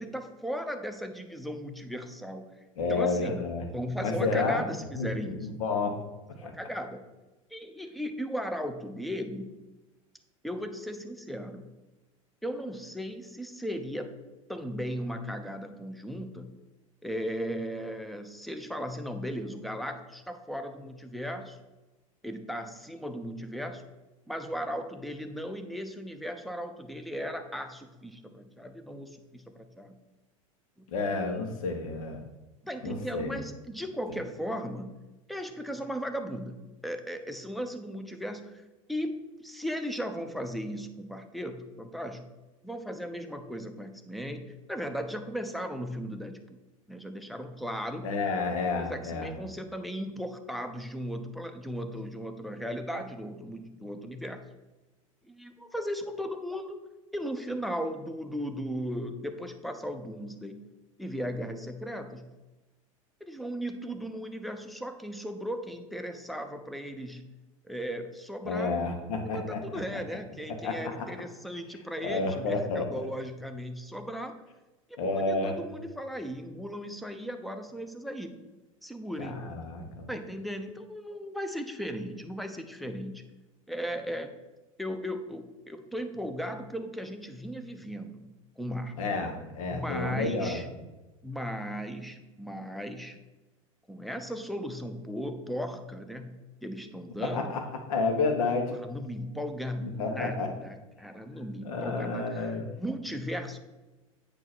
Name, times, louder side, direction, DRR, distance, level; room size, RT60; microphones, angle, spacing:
voice 1, 0.0-3.3 3.7-5.5 6.3-7.0 7.5-9.5 10.4-11.6 12.4-14.1 14.5-16.5 17.0-21.6 22.2-23.8 24.3-30.0 30.8-30.9 32.6-34.9 35.3-36.6 36.8-39.1 39.4-42.2 42.6-46.4 46.9-48.1 48.8-54.4 55.3-56.8 57.1-60.6 61.0-62.3 63.2-67.2 67.6-68.8 69.3-74.4 75.0-78.4 78.8-79.6 80.1-83.2 83.7-84.3 84.8-88.3 88.6-89.0 89.7-90.7 91.2-93.2 93.9-96.3 96.6-97.5 98.7-103.6, equal, ahead, 6 dB, 0.7 m, -36 dB
voice 2, 2.8-3.6 4.0-4.6 5.0-6.0 6.4-6.5 30.9-32.2 32.8-33.4 48.0-49.3 68.4-69.6 70.6-70.8 72.0-73.1 75.0-75.5 79.2-80.1 89.0-90.6 97.2-97.6 97.9-98.7 99.8-100.5 101.6-102.6, left 3 dB, 70° left, 4 dB, 1.3 m, -30 dB
8.7 x 3.0 x 6.0 m, 1.1 s
hypercardioid pair, 90°, 18 cm